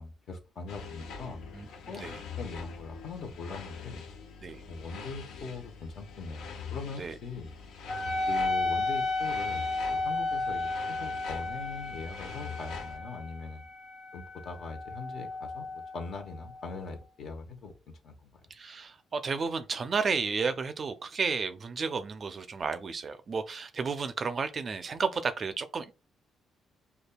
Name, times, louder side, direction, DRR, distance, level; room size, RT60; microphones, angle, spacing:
voice 1, 0.0-4.0 4.7-7.5 8.3-13.6 14.1-18.4, left 4 dB, 60° left, 0.8 m, -41 dB
sound 1, 0.7-13.0, left 5 dB, 85° left, 0.6 m, -44 dB
Wind instrument woodwind instrument, 7.9-16.8, left 2 dB, 30° left, 0.7 m, -33 dB
voice 2, 18.5-25.9, right 5 dB, 45° right, 0.4 m, -32 dB
5.1 x 2.3 x 2.2 m
cardioid pair, 90°, 0 cm